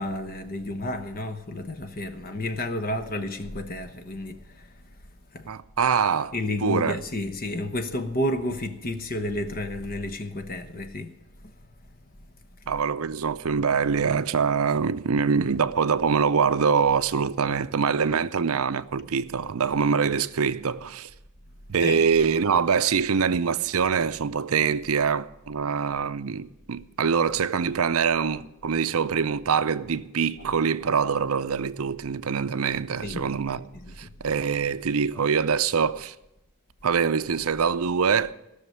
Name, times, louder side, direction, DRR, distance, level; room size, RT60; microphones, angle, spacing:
voice 1, 0.0-4.8 5.3-5.5 6.3-11.1 11.4-11.5 21.8-22.1 33.0-33.3 33.7-34.1, left 1 dB, 40° left, 0.9 m, -31 dB
voice 2, 5.5-6.3 6.6-7.0 12.7-21.1 21.7-33.6 34.0-36.1 36.8-38.3, right 6 dB, 70° right, 0.6 m, -24 dB
16.5 x 6.5 x 9.3 m
head